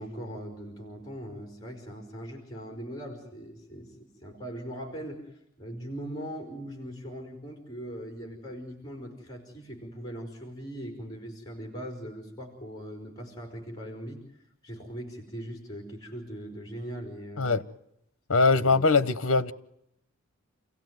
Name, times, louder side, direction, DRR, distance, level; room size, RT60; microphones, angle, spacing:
voice 1, 0.0-17.6 18.5-18.7, equal, 20° left, 4.6 m, -40 dB
voice 2, 18.3-19.5, left 3 dB, 70° left, 1.0 m, -22 dB
29.0 x 17.5 x 9.4 m
head